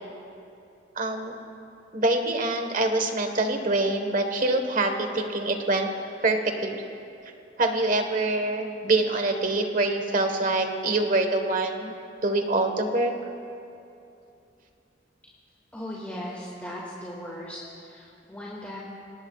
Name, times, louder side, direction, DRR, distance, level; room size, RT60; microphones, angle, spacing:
voice 1, 1.0-1.3 1.9-5.9 6.2-6.8 7.6-11.9 12.2-13.1, right 2 dB, 45° right, 5 dB, 1.4 m, -25 dB
voice 2, 15.7-18.8, left 1 dB, 10° left, -5 dB, 2.1 m, -38 dB
26.5 x 19.0 x 2.4 m, 2.7 s
head